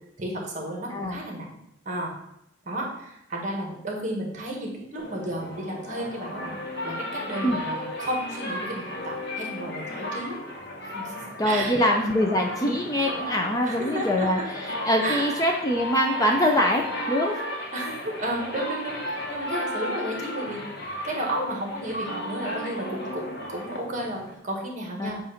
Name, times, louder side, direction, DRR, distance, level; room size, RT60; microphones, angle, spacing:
voice 1, 0.2-2.1 2.6-6.6 6.8-10.4 10.9-11.7 12.0-12.2 13.6-14.4 15.0-15.4 17.7-20.6 21.0-25.2, right 1 dB, 40° right, -1 dB, 1.5 m, -33 dB
voice 2, 0.9-1.2 7.4-7.6 11.4-17.4 25.0-25.1, equal, 20° left, 2 dB, 0.5 m, -24 dB
sound 1, 5.0-24.4, left 1 dB, 55° left, 1.1 m, -34 dB
7.6 x 2.6 x 5.7 m, 0.80 s
head